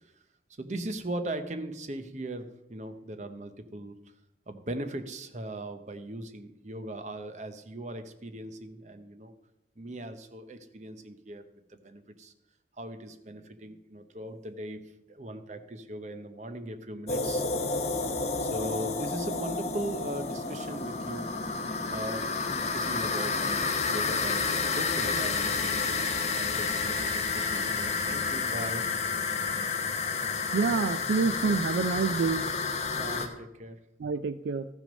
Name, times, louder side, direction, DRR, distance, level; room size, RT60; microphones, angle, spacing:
voice 1, 0.6-4.0 4.5-9.3 9.8-11.4 11.7-12.3 12.8-17.4 17.7-18.0 18.4-21.3 21.9-25.8 26.3-28.9 32.9-33.8, right 1 dB, 40° right, 9 dB, 0.7 m, -39 dB
sound 1, 17.1-33.3, left 4 dB, 35° left, 0.9 m, -30 dB
voice 2, 30.5-32.5 34.0-34.7, right 4 dB, 75° right, 13 dB, 0.3 m, -27 dB
13.5 x 6.1 x 5.2 m, 0.89 s
head